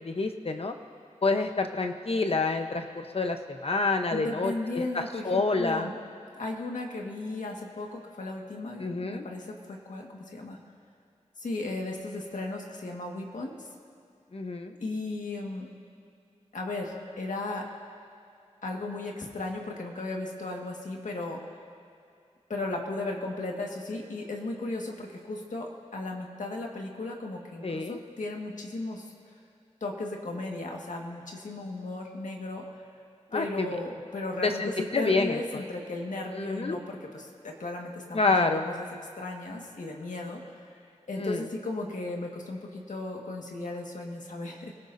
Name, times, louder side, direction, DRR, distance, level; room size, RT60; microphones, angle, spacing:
voice 1, 0.0-0.7 1.2-4.5 4.9-5.9 8.8-9.3 14.3-14.7 27.6-28.0 33.3-33.7 34.4-35.4 36.3-36.8 38.1-38.7 41.2-41.4, left 3 dB, 50° left, 5 dB, 1.0 m, -28 dB
voice 2, 4.1-6.0 6.3-10.6 11.4-13.7 14.8-15.7 16.5-17.7 18.6-21.4 22.5-29.1 29.8-32.7 33.3-38.9 39.2-40.8 41.1-44.7, left 2 dB, 90° left, 0 dB, 1.8 m, -35 dB
25.5 x 17.0 x 2.7 m, 2.5 s
wide cardioid pair, 90°, 13 cm